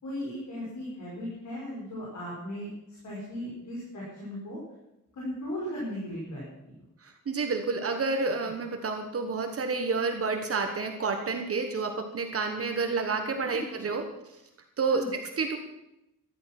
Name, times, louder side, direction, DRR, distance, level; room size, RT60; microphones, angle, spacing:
voice 1, 0.0-4.6 5.1-6.7 13.5-13.6 14.9-15.1, equal, 60° left, -6 dB, 5.4 m, -37 dB
voice 2, 7.0-14.0 14.8-15.6, right 4 dB, 45° right, 4 dB, 1.3 m, -29 dB
13.5 x 12.5 x 6.0 m, 0.88 s
wide cardioid pair, 175°, 32 cm